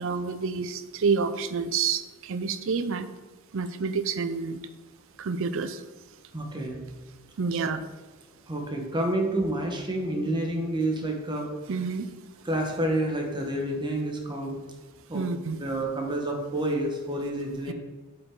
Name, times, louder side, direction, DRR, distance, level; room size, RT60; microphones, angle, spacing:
voice 1, 0.0-3.1 3.5-4.6 5.2-5.8 7.4-7.8 11.7-12.1 15.1-15.6 17.7-17.8, right 5 dB, 60° right, 12 dB, 0.5 m, -28 dB
voice 2, 6.3-6.8 7.5-7.7 8.5-11.5 11.8-11.9 12.4-14.6 15.1-17.7, right 1 dB, 20° right, 1 dB, 1.1 m, -29 dB
7.9 x 5.6 x 3.7 m, 1.2 s
head